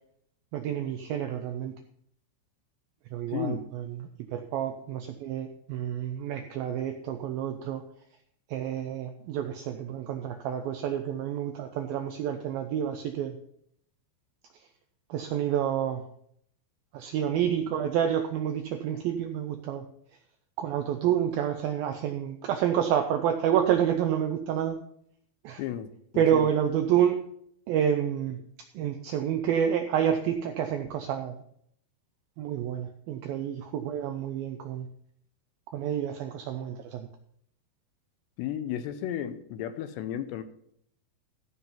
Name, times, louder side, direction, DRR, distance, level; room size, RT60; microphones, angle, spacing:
voice 1, 0.5-1.7 3.1-7.8 8.5-13.4 15.1-16.0 16.9-19.9 20.6-24.8 25.4-25.6 26.2-27.2 27.7-28.4 28.7-31.3 32.4-34.9 35.7-37.1, right 9 dB, 85° right, 6 dB, 2.1 m, -29 dB
voice 2, 3.3-3.6 25.6-26.5 38.4-40.4, left 10 dB, 85° left, 11 dB, 2.8 m, -34 dB
14.5 x 5.6 x 5.6 m, 0.69 s
omnidirectional pair, 5.0 m